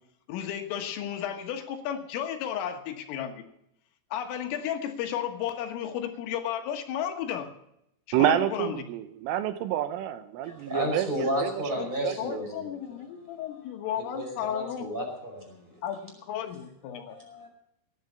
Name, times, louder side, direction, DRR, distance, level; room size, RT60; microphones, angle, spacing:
voice 1, 0.3-3.3 4.1-7.5 8.2-8.8 11.8-11.9 12.2-14.9 15.8-17.2, left 9 dB, 80° left, 5 dB, 3.9 m, -33 dB
voice 2, 8.1-12.2, right 11 dB, 80° right, 10 dB, 3.2 m, -28 dB
voice 3, 10.4-12.8 13.3-13.6 14.1-15.8 17.1-17.5, equal, 10° right, 1 dB, 4.8 m, -33 dB
18.0 x 11.5 x 5.5 m, 0.78 s
omnidirectional pair, 5.9 m